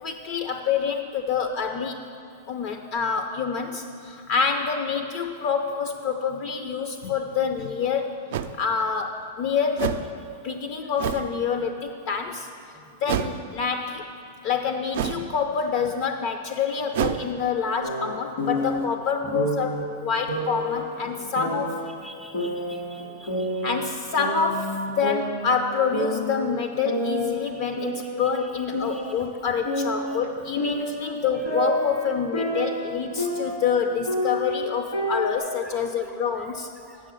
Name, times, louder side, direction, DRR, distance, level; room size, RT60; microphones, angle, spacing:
voice 1, 0.0-2.0 2.5-10.1 10.4-12.5 13.0-14.0 14.4-21.8 23.6-36.7, left 6 dB, 50° left, 6 dB, 0.5 m, -27 dB
sound 1, 7.3-7.4 8.3-8.6 9.8-10.1 11.0-11.3 13.1-13.5 14.9-15.3 16.9-17.2, right 10 dB, 65° right, 0.4 m, -27 dB
sound 2, 17.8-18.9 19.3-19.8 20.3-21.9 22.3-23.9 24.2-25.7 25.9-26.4 26.8-29.3 29.6-33.8 34.1-35.4, equal, 80° left, 2.1 m, -29 dB
voice 2, 22.0-23.7 28.9-29.0 36.9-37.0, right 1 dB, ahead, 3 dB, 0.5 m, -46 dB
7.5 x 6.1 x 7.6 m, 2.4 s
supercardioid pair, 140°, 0 cm